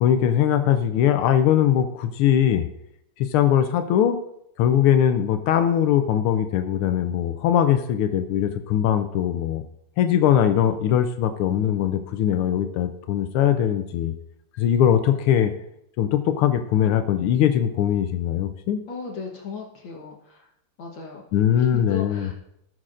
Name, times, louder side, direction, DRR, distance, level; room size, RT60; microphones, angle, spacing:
voice 1, 0.0-2.7 3.2-4.2 4.6-9.6 10.0-14.1 14.6-15.5 16.0-18.8 21.3-22.3, left 10 dB, 85° left, 8 dB, 1.5 m, -21 dB
voice 2, 18.9-20.5 20.8-21.2 21.6-22.3, left 5 dB, 60° left, 0 dB, 1.9 m, -36 dB
18.0 x 6.3 x 2.5 m, 0.77 s
omnidirectional pair, 2.4 m